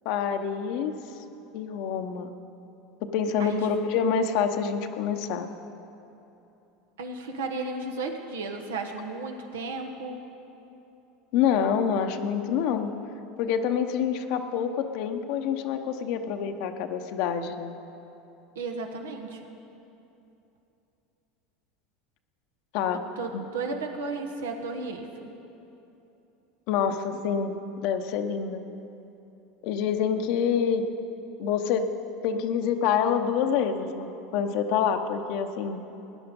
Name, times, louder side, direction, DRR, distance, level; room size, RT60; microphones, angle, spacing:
voice 1, 0.0-0.9 1.5-2.3 3.1-5.5 11.3-12.9 13.4-17.7 22.7-23.1 23.3-23.5 26.7-27.6 27.8-28.6 29.6-30.8 31.4-31.9 32.2-35.8, left 7 dB, 65° left, 6 dB, 0.9 m, -27 dB
voice 2, 7.0-10.2 18.5-19.5 23.2-25.3, right 3 dB, 90° right, 4 dB, 1.4 m, -34 dB
17.0 x 10.0 x 5.3 m, 2.9 s
supercardioid pair, 100°, 0 cm